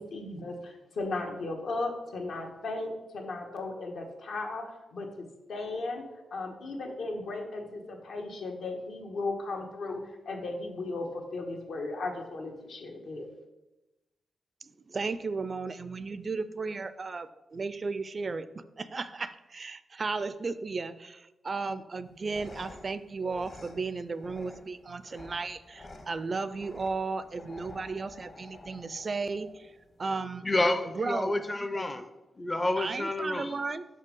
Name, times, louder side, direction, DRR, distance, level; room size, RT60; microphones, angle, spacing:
voice 1, 0.0-5.1 5.5-6.0 6.3-10.0 10.2-13.3, left 2 dB, 80° left, 2 dB, 1.2 m, -36 dB
voice 2, 14.6-29.7 30.0-30.5 30.9-31.3 32.8-33.9, right 4 dB, 40° right, 14 dB, 0.4 m, -35 dB
sound 1, 22.0-30.0, left 2 dB, 45° left, 1.0 m, -51 dB
voice 3, 30.4-32.0 32.4-33.5, left 2 dB, 20° left, 9 dB, 0.5 m, -29 dB
5.5 x 5.2 x 5.3 m, 1.0 s
cardioid pair, 95°, 0 cm